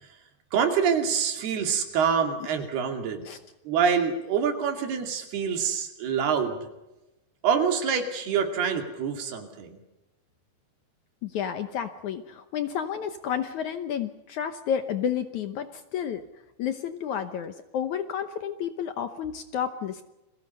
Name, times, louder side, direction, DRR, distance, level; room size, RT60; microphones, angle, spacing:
voice 1, 0.5-3.3 3.7-6.6 7.4-9.8, right 7 dB, 85° right, 5 dB, 4.6 m, -26 dB
voice 2, 11.2-16.2 16.6-20.0, left 8 dB, 70° left, 9 dB, 1.9 m, -31 dB
30.0 x 22.0 x 5.6 m, 0.98 s
omnidirectional pair, 4.4 m